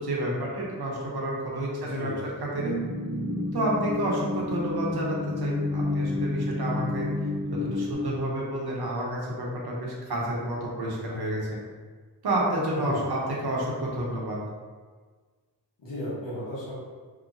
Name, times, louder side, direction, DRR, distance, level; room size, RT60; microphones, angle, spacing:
voice 1, 0.0-2.7 3.5-7.1 7.5-11.6 12.2-14.4, right 1 dB, 65° right, -4 dB, 0.8 m, -30 dB
voice 2, 1.7-2.2 12.7-13.1 15.8-16.7, equal, 90° left, -8 dB, 1.1 m, -35 dB
sound 1, 2.5-8.0, left 2 dB, 30° right, 0.7 m, -30 dB
2.8 x 2.1 x 2.5 m, 1.5 s
wide cardioid pair, 65°, 42 cm